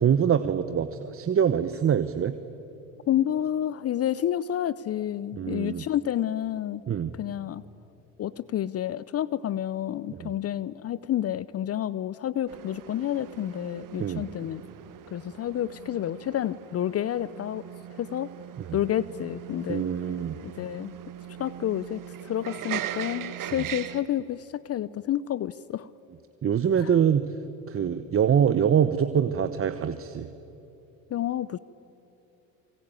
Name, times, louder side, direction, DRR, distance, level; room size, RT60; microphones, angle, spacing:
voice 1, 0.0-2.4 5.3-5.8 6.9-7.1 10.1-10.3 14.0-14.3 18.6-18.8 19.7-20.4 23.6-23.7 26.4-27.3 27.7-30.3, right 8 dB, 30° right, 11 dB, 1.1 m, -24 dB
voice 2, 3.1-6.8 7.2-7.6 8.2-14.6 15.1-17.6 18.0-18.3 18.7-19.8 20.6-20.9 21.4-25.9 26.8-26.9 31.1-31.6, left 11 dB, 35° left, 19 dB, 0.6 m, -29 dB
sound 1, 12.5-24.0, right 11 dB, 45° right, 1.6 m, -40 dB
26.0 x 24.5 x 9.2 m, 3.0 s
hypercardioid pair, 80°, 43 cm